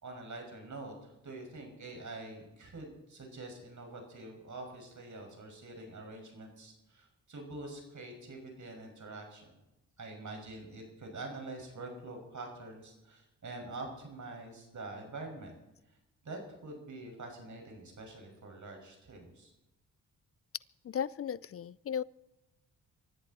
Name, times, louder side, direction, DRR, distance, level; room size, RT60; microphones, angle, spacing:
voice 1, 0.0-9.5 10.0-15.5 15.9-16.0 16.2-19.5, right 2 dB, 50° right, 2 dB, 6.1 m, -45 dB
voice 2, 20.8-22.0, left 8 dB, 40° left, 22 dB, 0.5 m, -35 dB
23.5 x 14.0 x 4.3 m, 0.96 s
supercardioid pair, 50°, 38 cm